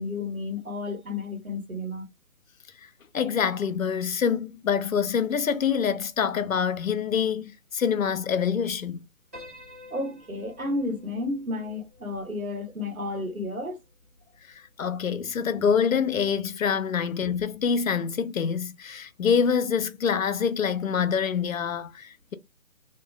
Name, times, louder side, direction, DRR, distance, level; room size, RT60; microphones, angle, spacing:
voice 1, 0.0-2.0 9.9-13.8, left 2 dB, 90° right, 1.2 m, -32 dB
voice 2, 3.1-9.0 14.8-22.3, left 7 dB, 75° left, 0.5 m, -26 dB
Piano, 9.3-13.7, left 2 dB, 10° right, 0.9 m, -50 dB
2.9 x 2.1 x 2.4 m
figure-of-eight pair, 145°, 41 cm